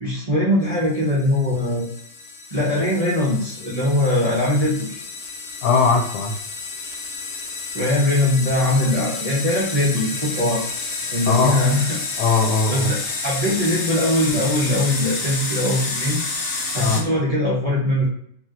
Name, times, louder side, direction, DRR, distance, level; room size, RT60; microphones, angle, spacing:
voice 1, 0.0-1.9 2.5-5.0 7.7-10.6 11.1-12.0 12.7-16.2 16.7-18.1, left 1 dB, 35° right, -8 dB, 0.6 m, -21 dB
sound 1, 0.9-17.0, left 3 dB, 60° left, 0.9 m, -30 dB
voice 2, 5.6-6.3 11.3-11.6 12.2-12.9 16.7-17.0, left 4 dB, 90° left, 2 dB, 1.2 m, -19 dB
2.9 x 2.9 x 2.4 m, 0.67 s
omnidirectional pair, 1.7 m